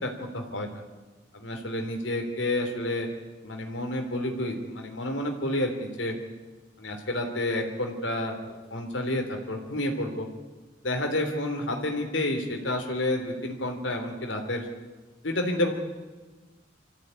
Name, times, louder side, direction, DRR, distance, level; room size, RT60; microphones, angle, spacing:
voice 1, 0.0-0.8 1.3-3.1 3.4-6.2 6.8-10.3 10.8-14.7 15.2-15.7, left 1 dB, 85° left, 3 dB, 3.4 m, -30 dB
25.0 x 14.5 x 9.6 m, 1.2 s
head